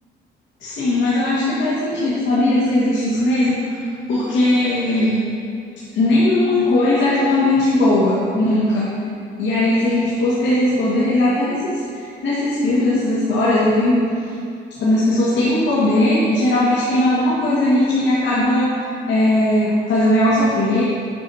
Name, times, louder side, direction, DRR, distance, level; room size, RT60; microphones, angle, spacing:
voice 1, 0.6-3.8 4.1-5.2 5.9-8.9 9.4-14.0 14.8-20.8, left 1 dB, 70° left, -9 dB, 1.7 m, -18 dB
8.7 x 7.0 x 2.8 m, 2.5 s
cardioid pair, 90°, 20 cm